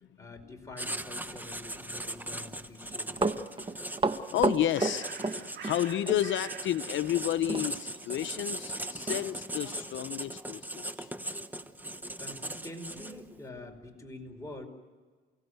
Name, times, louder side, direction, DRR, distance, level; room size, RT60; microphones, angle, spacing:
voice 1, 0.2-3.7 11.5-11.7 12.2-14.6, left 1 dB, 15° left, 2 dB, 5.0 m, -46 dB
Writing, 0.8-13.4, right 1 dB, 10° right, 1.1 m, -39 dB
Run, 2.9-5.8 6.1-6.2 7.5-7.7 8.0-8.1 8.6-8.7 9.1-9.2 9.8-9.9, right 3 dB, 25° right, 1.4 m, -30 dB
voice 2, 4.3-10.7 11.0-11.1, left 11 dB, 70° left, 11 dB, 0.7 m, -31 dB
Bird, 4.3-10.3, right 7 dB, 60° right, 2.0 m, -49 dB
29.0 x 17.0 x 8.1 m, 1.5 s
cardioid pair, 90°, 20 cm